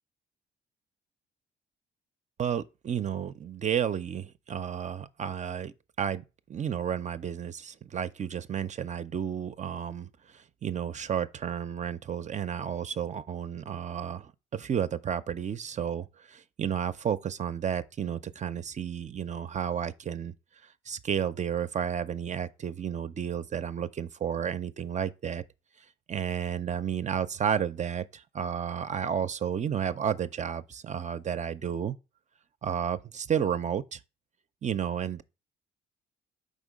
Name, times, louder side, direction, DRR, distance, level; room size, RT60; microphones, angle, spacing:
voice 1, 2.4-6.2 6.5-20.3 20.9-25.4 26.1-32.0 32.6-34.0 34.6-35.2, right 8 dB, 35° right, 0.4 m, -32 dB
5.3 x 3.6 x 5.1 m
cardioid pair, 90°, 20 cm